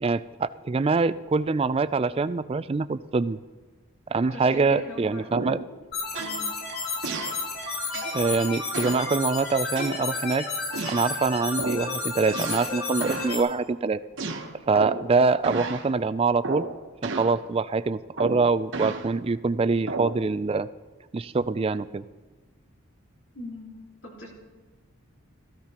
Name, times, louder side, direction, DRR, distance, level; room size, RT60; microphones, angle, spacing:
voice 1, 0.0-3.4 4.1-5.6 8.1-10.4 10.9-14.0 14.7-16.7 17.0-20.7 21.1-22.0, right 4 dB, 25° right, 14 dB, 0.3 m, -24 dB
voice 2, 4.1-5.5 6.2-6.5 23.3-23.7 24.0-24.3, left 1 dB, 70° left, -3 dB, 4.0 m, -41 dB
sound 1, 5.3-5.7 6.1-6.4 7.0-7.4 7.9-8.2 8.7-9.1 9.8-10.3 10.7-11.1 11.6-11.9 12.3-12.8 13.0-13.3 14.2-15.1 15.4-15.8 16.4-16.7 17.0-17.4 18.2-19.1 19.9-20.2, right 3 dB, 60° right, 1.2 m, -32 dB
sound 2, 5.9-13.4, left 4 dB, 45° left, 2.9 m, -32 dB
17.5 x 14.5 x 3.0 m, 1.3 s
head